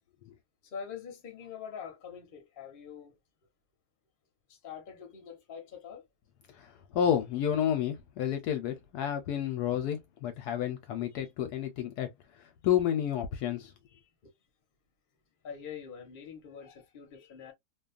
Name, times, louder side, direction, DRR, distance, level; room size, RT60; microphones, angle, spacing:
voice 1, 0.7-3.1 4.6-6.0 14.2-14.3 15.4-17.5, left 7 dB, 40° left, 0.8 m, -44 dB
voice 2, 6.5-12.1 12.6-13.7, left 10 dB, 75° left, 1.0 m, -30 dB
2.7 x 2.2 x 2.3 m
omnidirectional pair, 1.9 m